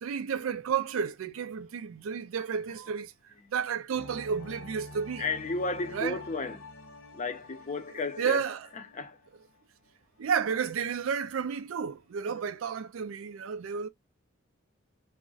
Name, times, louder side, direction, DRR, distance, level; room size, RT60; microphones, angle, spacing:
voice 1, 0.0-3.1 3.5-5.3 5.9-6.2 8.2-8.7 10.2-13.9, right 6 dB, 90° right, 0.4 m, -31 dB
sound 1, 3.9-9.6 9.9-10.0, left 1 dB, 85° left, 0.8 m, -47 dB
voice 2, 5.2-6.7 7.1-8.4 8.9-9.2, left 3 dB, 35° left, 0.5 m, -33 dB
2.4 x 2.1 x 3.8 m
head